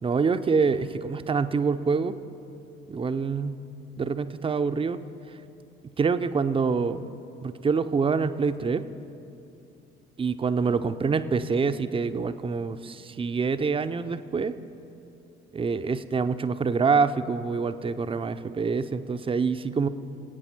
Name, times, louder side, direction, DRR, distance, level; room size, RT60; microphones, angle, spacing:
voice 1, 0.0-2.1 2.9-3.6 4.0-5.0 6.0-7.0 7.4-8.8 10.2-14.5 15.5-19.9, right 5 dB, 20° right, 11 dB, 0.6 m, -26 dB
24.5 x 8.9 x 4.3 m, 2.8 s
figure-of-eight pair, 55°, 30 cm